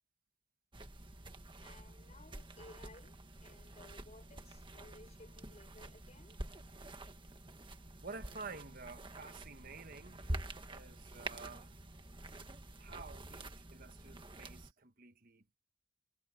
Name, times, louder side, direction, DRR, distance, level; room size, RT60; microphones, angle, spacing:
sound 1, 0.7-14.7, right 1 dB, 25° right, 1.5 m, -48 dB
voice 1, 1.6-6.4, left 2 dB, 35° left, 6.6 m, -59 dB
voice 2, 8.0-10.4 10.7-11.8 12.8-15.6, right 4 dB, 45° right, 1.4 m, -51 dB
head